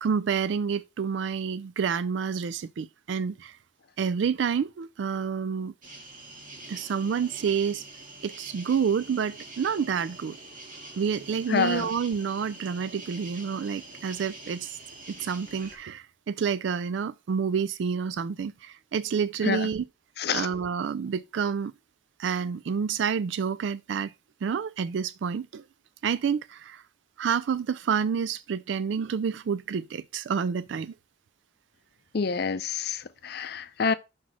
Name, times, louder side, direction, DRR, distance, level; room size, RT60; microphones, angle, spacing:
voice 1, 0.0-3.6 4.0-5.7 6.7-7.8 8.2-10.4 11.0-14.8 15.1-19.9 20.3-21.7 22.2-24.1 24.4-25.6 26.0-26.8 27.2-30.9, right 6 dB, 70° right, 0.3 m, -29 dB
sound 1, 5.8-15.8, right 2 dB, 45° right, 1.8 m, -45 dB
voice 2, 11.5-11.9 19.4-19.7 20.2-20.5 32.1-33.9, left 5 dB, 55° left, 0.5 m, -27 dB
6.1 x 4.1 x 5.7 m
head